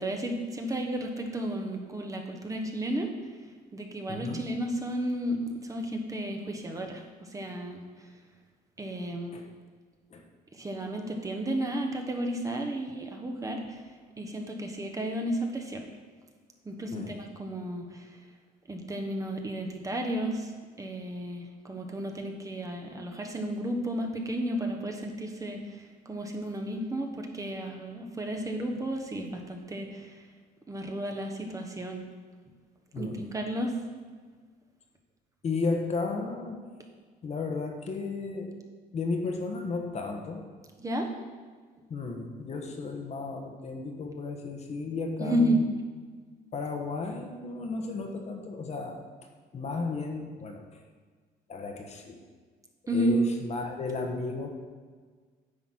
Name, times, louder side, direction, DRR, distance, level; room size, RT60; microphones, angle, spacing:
voice 1, 0.0-3.1 3.7-7.9 8.8-9.4 10.5-13.8 14.2-15.8 16.6-18.1 18.7-20.5 20.8-30.2 30.7-32.0 33.0-33.7 40.8-41.1 45.2-45.6 52.9-53.2, right 1 dB, 20° right, 2 dB, 1.0 m, -32 dB
voice 2, 4.1-4.4 9.3-9.5 10.1-10.2 16.9-17.2 32.9-33.2 35.4-36.6 37.2-38.6 38.9-40.4 41.9-45.7 46.5-49.0 49.5-50.7 51.5-52.2 52.9-54.5, left 3 dB, 40° left, 4 dB, 1.1 m, -34 dB
9.6 x 4.1 x 6.0 m, 1.6 s
cardioid pair, 110°, 17 cm